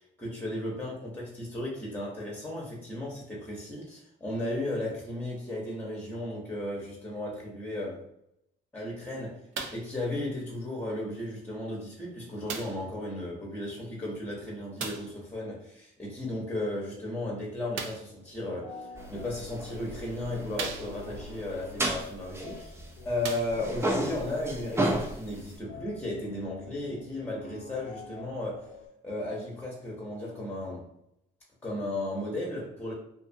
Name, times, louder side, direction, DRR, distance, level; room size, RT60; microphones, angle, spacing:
voice 1, 0.0-8.0 8.7-9.4 9.7-22.8 23.0-28.7 29.0-30.9 31.6-32.9, left 1 dB, 10° left, -3 dB, 0.9 m, -35 dB
sound 1, 9.5-9.9 10.8-10.9 12.5-12.9 14.8-15.2 17.7-18.2 19.1-19.2 19.8-19.9 20.5-21.2 22.5-22.6 23.1-23.9 24.7-24.8, right 5 dB, 80° right, 0.5 m, -38 dB
sound 2, 18.3-28.9, left 3 dB, 85° left, 0.7 m, -47 dB
sound 3, 19.0-23.2 23.5-25.6, right 1 dB, 10° right, 0.5 m, -33 dB
2.6 x 2.5 x 2.6 m, 0.77 s
cardioid pair, 90°, 20 cm